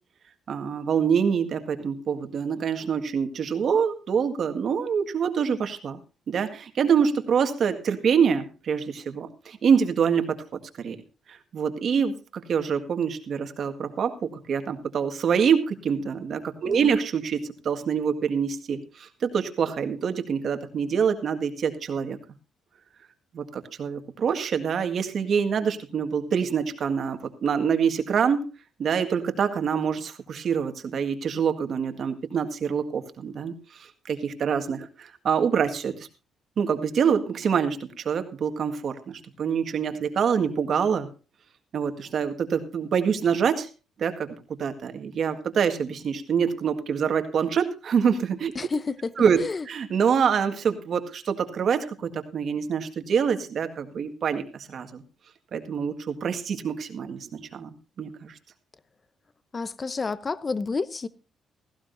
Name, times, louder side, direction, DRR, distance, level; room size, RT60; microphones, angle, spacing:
voice 1, 0.5-6.0 6.3-10.4 10.8-11.0 11.3-22.2 23.3-28.4 28.8-36.1 36.6-41.1 41.7-43.7 44.0-48.5 49.2-49.4 49.7-55.0 55.5-58.3, right 7 dB, 60° right, 1.7 m, -26 dB
voice 2, 16.6-17.0 48.5-49.1 49.4-49.7 59.5-61.1, left 4 dB, 30° left, 0.8 m, -30 dB
17.0 x 15.0 x 2.7 m
cardioid pair, 90°, 0 cm